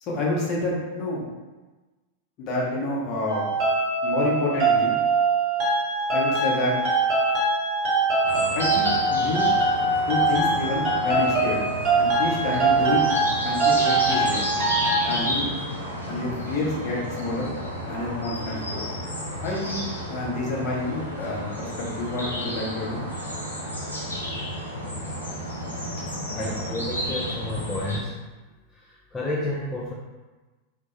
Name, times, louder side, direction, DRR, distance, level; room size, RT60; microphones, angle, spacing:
voice 1, 0.1-1.2 2.4-3.5 4.0-5.0 6.1-6.8 8.5-9.5 10.0-11.7 12.0-13.0 13.4-14.4 15.0-15.5 16.1-17.5 17.9-18.9 19.4-23.0 26.4-26.8, left 2 dB, 40° left, -4 dB, 0.7 m, -28 dB
sound 1, 3.3-15.0, right 3 dB, 35° right, 0.9 m, -23 dB
sound 2, 8.2-28.0, equal, 80° left, 0.5 m, -32 dB
voice 2, 26.3-28.2 28.7-29.9, left 1 dB, 15° left, -5 dB, 0.3 m, -31 dB
2.2 x 2.1 x 2.9 m, 1.2 s
figure-of-eight pair, 90°, 0 cm